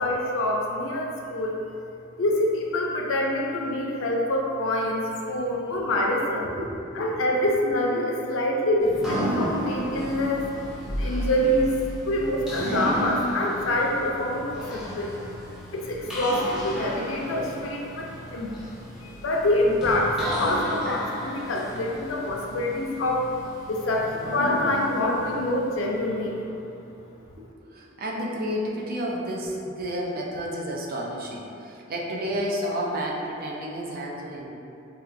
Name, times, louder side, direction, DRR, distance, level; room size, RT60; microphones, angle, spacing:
voice 1, 0.0-1.6 2.2-6.5 7.0-10.4 10.9-11.7 12.0-15.1 15.7-18.5 19.0-23.3 23.7-26.4, left 1 dB, 75° left, -1 dB, 0.5 m, -26 dB
voice 2, 6.4-7.1 26.9-27.0 27.4-34.6, equal, 50° right, -2 dB, 0.5 m, -31 dB
sound 1, 8.8-26.6, equal, 5° right, 0.6 m, -33 dB
4.2 x 2.3 x 2.5 m, 2.7 s
head